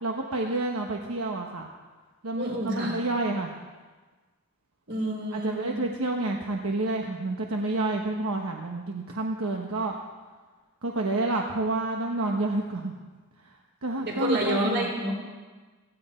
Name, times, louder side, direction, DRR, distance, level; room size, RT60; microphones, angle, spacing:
voice 1, 0.0-1.7 2.2-3.6 5.3-9.9 10.8-12.9 13.8-14.9, right 2 dB, 80° right, 1 dB, 1.1 m, -29 dB
voice 2, 2.3-3.0 4.9-5.8 14.0-15.2, right 1 dB, 55° right, 0 dB, 4.0 m, -29 dB
16.5 x 15.5 x 4.4 m, 1.3 s
head